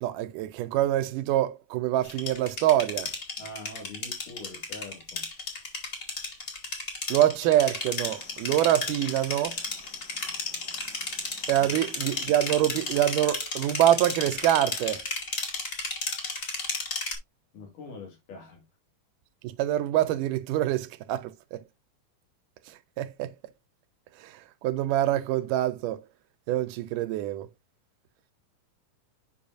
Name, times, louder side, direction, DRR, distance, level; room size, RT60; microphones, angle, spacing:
voice 1, 0.0-3.1 7.1-9.6 11.5-15.0 19.4-21.6 23.0-23.3 24.6-26.0 26.5-27.5, right 13 dB, 85° right, 2.2 m, -25 dB
sound 1, 2.0-17.1, left 3 dB, 35° left, 1.4 m, -33 dB
voice 2, 3.4-5.3 11.6-11.8 17.5-18.6, left 2 dB, 90° left, 3.7 m, -44 dB
sound 2, 8.0-13.0, left 4 dB, 70° left, 4.3 m, -49 dB
8.4 x 5.5 x 2.5 m
omnidirectional pair, 3.6 m